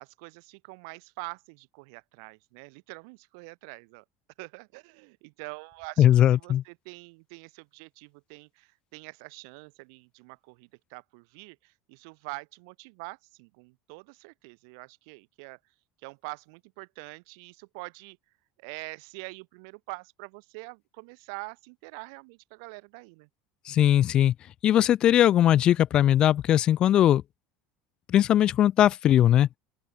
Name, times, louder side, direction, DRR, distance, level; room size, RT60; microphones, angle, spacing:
voice 1, 0.0-4.0 4.4-6.1 6.3-15.6 16.0-18.2 18.6-23.3, right 33 dB, 75° right, 2.6 m, -44 dB
voice 2, 6.0-6.6 23.7-24.3 24.6-27.2 28.1-29.5, left 11 dB, 40° left, 0.6 m, -20 dB
open air
supercardioid pair, 125°, 2 cm